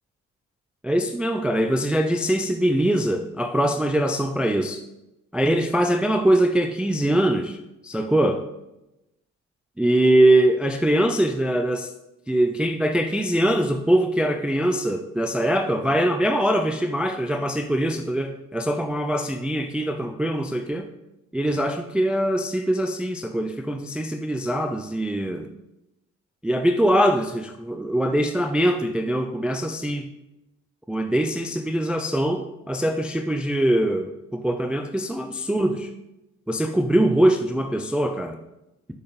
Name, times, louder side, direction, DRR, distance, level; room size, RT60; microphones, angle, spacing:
voice 1, 0.8-4.8 5.3-7.6 7.8-8.4 9.8-11.9 12.3-20.9 21.3-25.5 26.4-30.1 30.9-35.9 36.5-38.4, right 1 dB, 5° right, 7 dB, 0.4 m, -22 dB
6.5 x 5.5 x 4.0 m, 0.92 s
hypercardioid pair, 55°, 39 cm